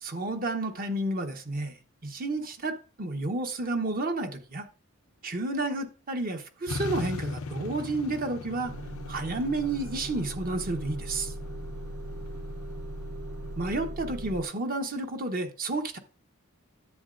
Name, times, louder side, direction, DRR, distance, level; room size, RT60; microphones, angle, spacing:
voice 1, 0.0-1.8 2.0-4.7 5.2-8.7 9.1-11.3 13.6-16.0, right 2 dB, 45° right, 1.0 m, -31 dB
sound 1, 6.7-13.7, left 3 dB, 85° left, 0.6 m, -40 dB
Motor vehicle (road) / Engine starting / Idling, 8.6-14.4, right 1 dB, 70° right, 0.9 m, -39 dB
10.5 x 7.6 x 2.6 m
head